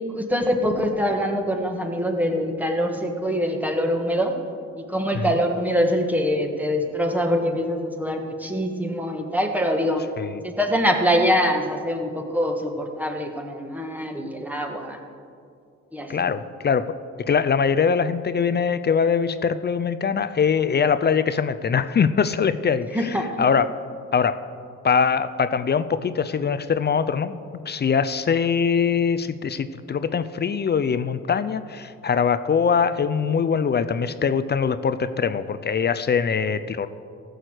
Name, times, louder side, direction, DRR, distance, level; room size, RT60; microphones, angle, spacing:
voice 1, 0.1-4.3 4.9-10.0 10.4-15.0 15.9-16.1 22.9-23.2, equal, 5° right, 3 dB, 1.7 m, -24 dB
voice 2, 16.1-16.9 17.3-23.7 24.1-24.4 24.8-27.4 27.7-36.9, left 6 dB, 35° left, 13 dB, 0.5 m, -22 dB
14.5 x 6.4 x 7.9 m, 2.3 s
cardioid pair, 90°, 30 cm